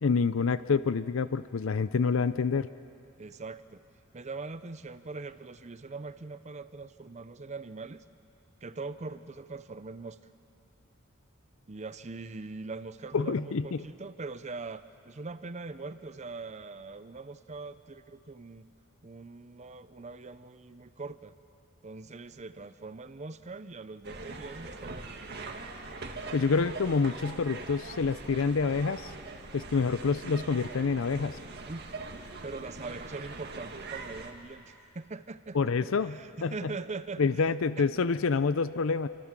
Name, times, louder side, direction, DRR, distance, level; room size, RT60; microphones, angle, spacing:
voice 1, 0.0-2.7 13.1-13.8 26.3-29.1 29.5-31.4 35.5-36.5 37.2-39.1, left 5 dB, 65° left, 14 dB, 0.5 m, -27 dB
voice 2, 3.2-3.8 4.1-8.0 8.6-10.2 11.7-18.7 19.0-21.3 21.8-25.1 31.7-31.9 32.4-37.9, right 3 dB, 35° right, 13 dB, 0.6 m, -42 dB
sound 1, 24.0-34.3, right 3 dB, 50° right, 1.9 m, -42 dB
28.5 x 24.5 x 7.5 m, 2.7 s
head